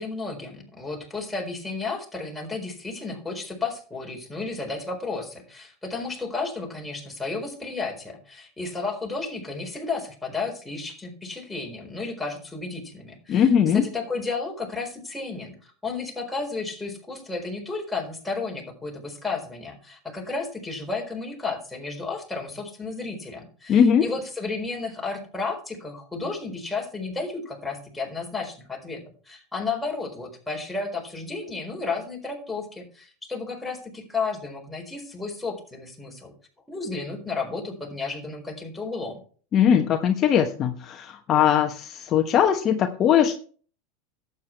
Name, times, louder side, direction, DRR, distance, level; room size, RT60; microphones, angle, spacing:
voice 1, 0.0-13.5 13.7-36.3 36.7-39.2, left 3 dB, 5° left, 0 dB, 4.2 m, -32 dB
voice 2, 13.3-13.9 23.7-24.1 39.5-43.3, left 8 dB, 40° left, 5 dB, 1.1 m, -20 dB
12.0 x 8.4 x 4.6 m, 0.42 s
hypercardioid pair, 110°, 0 cm